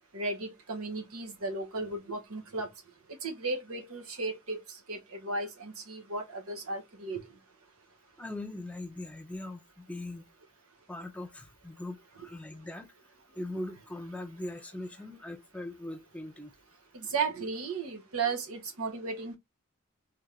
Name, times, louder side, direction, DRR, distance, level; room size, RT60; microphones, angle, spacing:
voice 1, 0.1-2.7 3.2-4.6 4.9-5.0 5.2-7.2 17.1-19.4, right 3 dB, 90° right, 1.2 m, -34 dB
voice 2, 8.2-10.2 10.9-12.9 13.4-16.5, left 1 dB, 5° left, 0.6 m, -40 dB
3.6 x 3.5 x 3.3 m
head